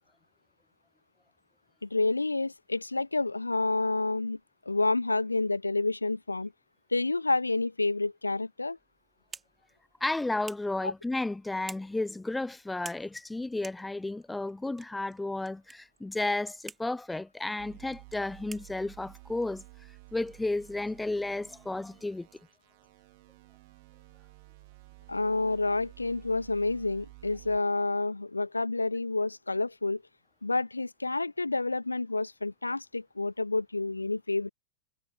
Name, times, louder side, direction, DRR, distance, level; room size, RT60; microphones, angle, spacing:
voice 1, 1.8-4.4 4.7-6.5 6.9-8.8 10.8-10.9 25.1-30.0 30.4-34.5, left 3 dB, 80° left, 0.6 m, -29 dB
sound 1, 8.8-21.2, right 5 dB, 15° right, 4.6 m, -53 dB
voice 2, 10.0-19.6 20.1-22.3, left 2 dB, 5° left, 1.1 m, -33 dB
sound 2, 17.6-27.6, right 27 dB, 50° right, 5.2 m, -53 dB
figure-of-eight pair, 90°, 0 cm